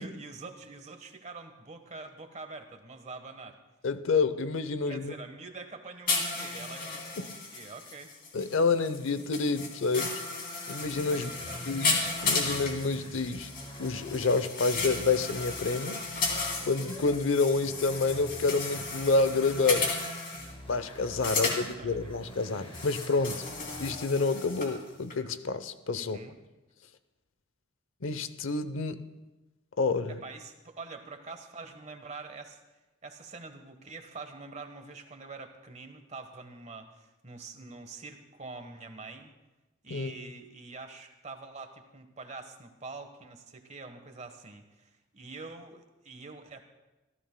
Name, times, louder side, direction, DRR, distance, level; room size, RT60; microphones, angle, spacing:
voice 1, 0.0-3.6 4.9-8.1 11.0-11.6 21.2-22.1 25.9-26.4 30.1-32.6 33.0-39.3 39.8-46.7, right 3 dB, 35° right, 7 dB, 1.2 m, -45 dB
voice 2, 3.8-5.1 7.2-7.3 8.3-10.2 10.7-11.3 11.7-13.5 13.8-16.1 16.7-20.0 20.7-23.4 23.8-26.2 28.0-29.0 29.8-30.2 39.9-40.1, left 4 dB, 85° left, 12 dB, 0.7 m, -28 dB
sound 1, 6.1-20.5 21.1-21.6 22.7-24.7 25.1-25.2, left 4 dB, 50° left, 2.9 m, -34 dB
sound 2, 10.8-17.2 17.5-23.9, equal, 30° left, 2.2 m, -46 dB
26.5 x 14.5 x 2.2 m, 1.1 s
head